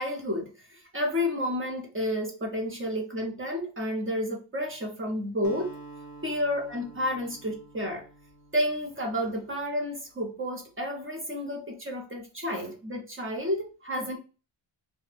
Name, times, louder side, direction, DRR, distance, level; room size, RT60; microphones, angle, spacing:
voice 1, 0.0-5.8 6.2-8.0 8.5-14.2, left 1 dB, 25° right, 0 dB, 0.6 m, -31 dB
Acoustic guitar, 5.4-9.9, right 3 dB, 45° left, 0.6 m, -48 dB
2.5 x 2.2 x 3.2 m, 0.33 s
wide cardioid pair, 165°, 50 cm